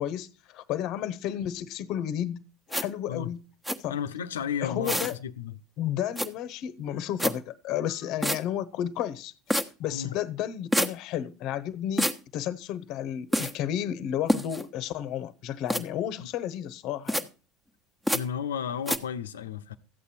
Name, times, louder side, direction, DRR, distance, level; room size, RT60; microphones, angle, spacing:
voice 1, 0.0-2.4 2.7-3.4 3.8-4.0 4.6-5.2 5.8-17.3, left 10 dB, 55° left, 1.0 m, -32 dB
sound 1, 2.7-2.8 3.6-3.8 4.8-5.1 6.2-6.3 7.2-7.3 8.2-8.4 9.5-9.7 10.7-10.9 12.0-12.2 13.3-13.5 14.3-14.6 15.7-15.8 17.1-17.2 18.1-18.2 18.9-19.0, equal, 5° right, 1.3 m, -26 dB
voice 2, 3.9-4.9 5.2-5.5 9.9-10.1 18.1-19.8, left 8 dB, 80° left, 0.8 m, -33 dB
14.0 x 8.4 x 4.4 m
hypercardioid pair, 80°, 0 cm